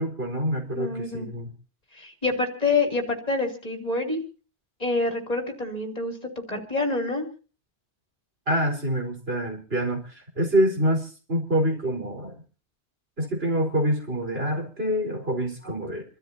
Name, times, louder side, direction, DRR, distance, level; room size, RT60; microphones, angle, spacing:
voice 1, 0.0-1.5 8.5-12.3 13.2-16.0, right 1 dB, 65° right, 1 dB, 4.8 m, -26 dB
voice 2, 0.7-1.3 1.9-4.2 4.8-6.1 6.5-7.3, left 3 dB, 35° left, 3 dB, 3.2 m, -27 dB
28.5 x 13.0 x 2.8 m, 0.37 s
omnidirectional pair, 1.1 m